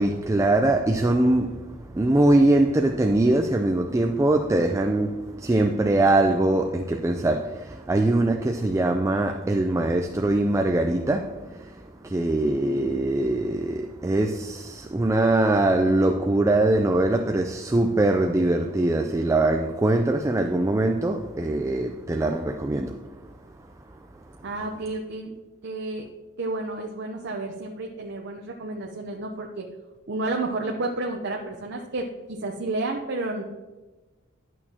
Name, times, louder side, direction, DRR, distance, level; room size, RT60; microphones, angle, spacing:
voice 1, 0.0-23.0, right 2 dB, 15° right, 0.3 m, -22 dB
voice 2, 24.4-25.3 25.6-26.0 26.4-29.7 30.1-33.4, right 2 dB, 55° right, 0.7 m, -31 dB
11.0 x 6.3 x 2.8 m
head